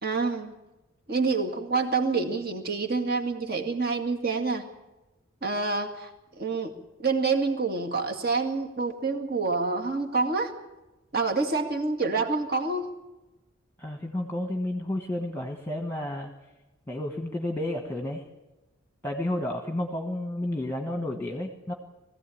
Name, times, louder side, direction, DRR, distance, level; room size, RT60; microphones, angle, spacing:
voice 1, 0.0-0.5 1.1-4.6 5.4-6.7 7.0-10.5 11.1-12.9, right 4 dB, 45° right, 3 dB, 2.1 m, -27 dB
voice 2, 13.8-16.3 16.9-18.2 19.0-21.7, left 1 dB, 10° left, 2 dB, 1.3 m, -31 dB
21.5 x 16.0 x 8.7 m, 1.1 s
head